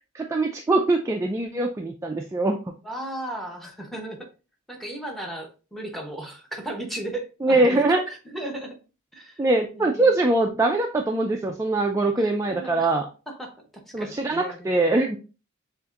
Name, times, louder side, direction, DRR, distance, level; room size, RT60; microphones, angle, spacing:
voice 1, 0.1-2.7 7.4-8.0 9.4-13.1 13.9-15.2, right 2 dB, 15° right, 2 dB, 0.3 m, -22 dB
voice 2, 2.8-4.3 4.7-8.8 9.1-9.4 9.7-10.2 12.2-12.9 13.3-14.7, right 1 dB, ahead, 2 dB, 0.9 m, -36 dB
6.7 x 2.5 x 2.5 m, 0.33 s
head